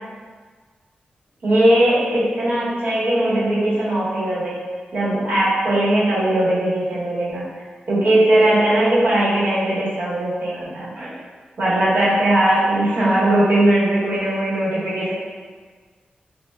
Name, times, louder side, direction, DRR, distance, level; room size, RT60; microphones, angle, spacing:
voice 1, 1.4-4.6 4.9-7.4 7.9-11.1 11.6-15.1, right 1 dB, 75° right, -9 dB, 1.5 m, -19 dB
5.5 x 2.6 x 2.4 m, 1.5 s
wide cardioid pair, 100°, 3 cm